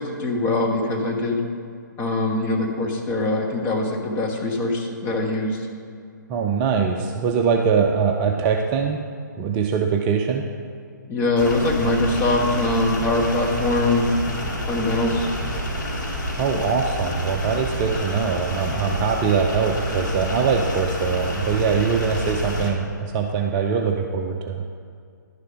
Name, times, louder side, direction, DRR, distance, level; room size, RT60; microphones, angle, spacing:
voice 1, 0.0-1.4 2.0-5.6 11.1-14.1 14.7-15.3, left 2 dB, 20° left, 0 dB, 1.2 m, -22 dB
voice 2, 6.3-9.0 9.4-10.4 16.3-24.6, right 6 dB, 25° right, 2 dB, 0.5 m, -22 dB
sound 1, 11.4-22.7, equal, 75° left, 2.0 m, -28 dB
11.0 x 6.6 x 5.1 m, 2.2 s
figure-of-eight pair, 135°, 11 cm